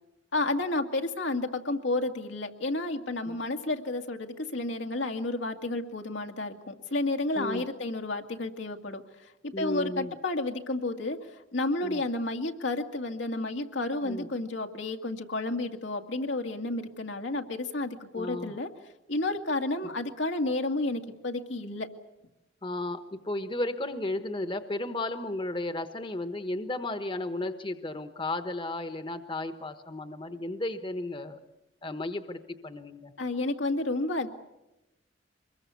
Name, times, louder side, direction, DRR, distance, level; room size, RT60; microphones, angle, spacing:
voice 1, 0.3-9.0 9.4-18.7 19.1-21.9 33.2-34.3, left 2 dB, 80° left, 4 dB, 2.2 m, -31 dB
voice 2, 9.5-10.1 11.8-12.0 14.0-14.3 18.1-18.5 22.6-31.4 31.8-33.1, left 2 dB, 25° left, 9 dB, 1.1 m, -34 dB
24.5 x 22.0 x 8.3 m, 0.95 s
head